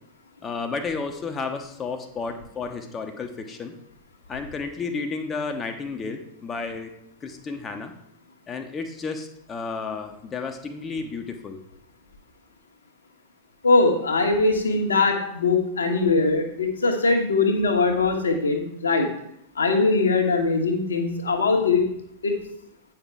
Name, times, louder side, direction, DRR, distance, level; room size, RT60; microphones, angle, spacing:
voice 1, 0.4-3.7 4.3-6.9 7.2-7.9 8.5-11.6, left 4 dB, 20° left, 5 dB, 0.9 m, -32 dB
voice 2, 13.6-19.1 19.5-21.8 22.2-22.3, left 3 dB, 75° left, 3 dB, 1.3 m, -21 dB
8.7 x 5.9 x 3.7 m, 0.75 s
figure-of-eight pair, 90°, 0 cm